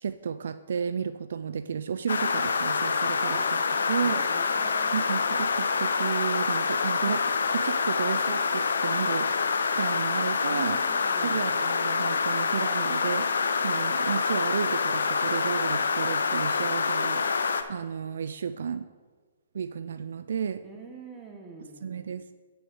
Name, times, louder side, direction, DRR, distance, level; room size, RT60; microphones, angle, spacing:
voice 1, 0.0-3.4 3.9-4.2 4.9-7.2 7.5-10.8 11.2-18.9 19.5-20.6 21.8-22.3, right 7 dB, 70° right, 12 dB, 0.4 m, -32 dB
sound 1, 2.1-17.6, left 5 dB, 80° left, 0.7 m, -26 dB
voice 2, 3.2-5.1 10.5-11.6 20.6-22.0, right 3 dB, 15° right, 1 dB, 1.5 m, -45 dB
8.8 x 6.2 x 4.7 m, 1.4 s
hypercardioid pair, 145°, 0 cm